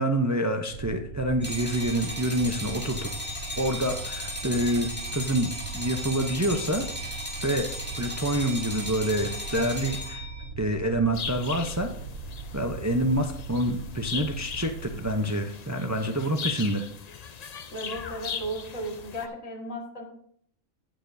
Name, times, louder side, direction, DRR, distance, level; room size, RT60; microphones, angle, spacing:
voice 1, 0.0-3.1 3.6-6.9 7.4-7.7 8.0-10.2 10.6-11.9 12.5-16.9, right 1 dB, 20° right, 5 dB, 0.4 m, -27 dB
sound 1, 0.7-15.2, right 4 dB, 85° right, 1.3 m, -39 dB
sound 2, 1.4-10.4, left 1 dB, 10° left, 2.3 m, -36 dB
sound 3, 11.1-19.3, left 6 dB, 50° left, 0.5 m, -39 dB
voice 2, 17.7-20.0, right 1 dB, 85° left, 0 dB, 2.3 m, -35 dB
16.5 x 6.7 x 2.7 m, 0.64 s
omnidirectional pair, 1.4 m